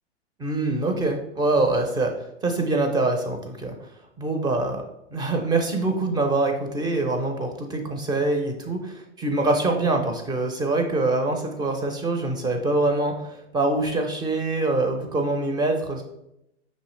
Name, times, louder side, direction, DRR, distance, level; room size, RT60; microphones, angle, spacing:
voice 1, 0.4-2.1 2.4-3.7 4.2-4.8 5.1-16.0, right 2 dB, 10° right, 4 dB, 0.6 m, -24 dB
5.4 x 3.1 x 3.2 m, 0.84 s
hypercardioid pair, 110°, 35 cm